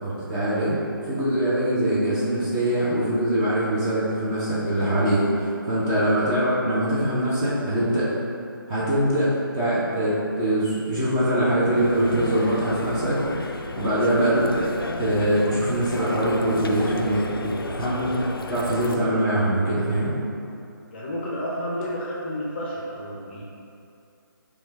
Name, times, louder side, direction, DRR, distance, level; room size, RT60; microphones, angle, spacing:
voice 1, 0.0-8.1 8.7-14.7 15.0-20.2, right 1 dB, 15° right, -9 dB, 0.6 m, -23 dB
sound 1, 11.7-19.0, left 2 dB, 75° left, 0.4 m, -32 dB
voice 2, 20.9-23.4, equal, 25° left, -5 dB, 0.6 m, -31 dB
6.1 x 2.3 x 3.2 m, 2.7 s
figure-of-eight pair, 150°, 12 cm